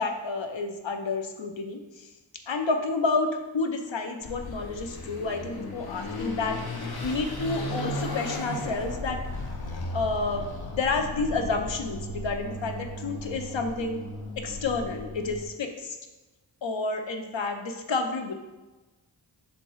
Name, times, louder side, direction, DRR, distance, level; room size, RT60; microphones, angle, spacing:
voice 1, 0.0-2.0 2.5-3.3 3.5-9.2 9.9-10.4 10.7-14.0 14.4-16.0 16.6-18.3, left 3 dB, 80° left, 5 dB, 0.8 m, -30 dB
Car passing by / Accelerating revving vroom, 4.2-15.4, left 1 dB, 55° left, 1.0 m, -35 dB
5.9 x 3.9 x 4.7 m, 1.1 s
cardioid pair, 45°, 45 cm